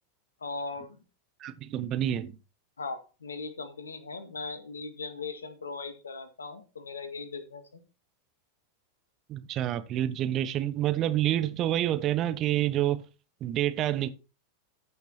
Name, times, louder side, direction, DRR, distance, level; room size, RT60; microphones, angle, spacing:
voice 1, 0.4-1.0 2.8-7.8, left 4 dB, 75° left, 1.8 m, -39 dB
voice 2, 1.4-2.4 9.3-13.0 13.4-14.1, right 12 dB, 35° right, 1.0 m, -28 dB
14.5 x 6.0 x 4.4 m
figure-of-eight pair, 90°, 0 cm